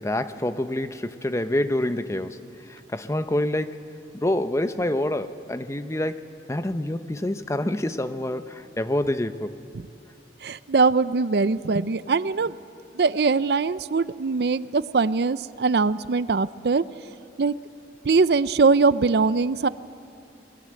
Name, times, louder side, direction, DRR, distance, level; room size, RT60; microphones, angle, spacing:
voice 1, 0.0-3.8 4.1-6.2 6.5-9.6, left 1 dB, 15° left, 11 dB, 0.7 m, -27 dB
voice 2, 10.4-12.6 12.9-16.8 17.4-17.5 18.1-19.7, right 4 dB, 65° right, 16 dB, 0.5 m, -21 dB
28.0 x 20.5 x 7.7 m, 2.5 s
head